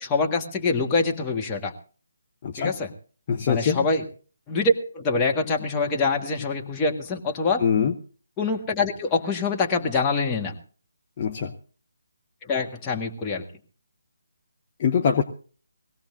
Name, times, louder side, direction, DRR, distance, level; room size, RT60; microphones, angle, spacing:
voice 1, 0.0-1.7 2.6-2.9 3.5-4.0 4.5-7.6 8.4-10.6 12.5-13.4, left 3 dB, 15° left, 0 dB, 1.6 m, -25 dB
voice 2, 3.3-3.9 7.6-7.9 11.2-11.5 14.8-15.2, left 7 dB, 35° left, 5 dB, 0.9 m, -23 dB
21.5 x 16.5 x 2.6 m, 0.39 s
figure-of-eight pair, 145°, 0 cm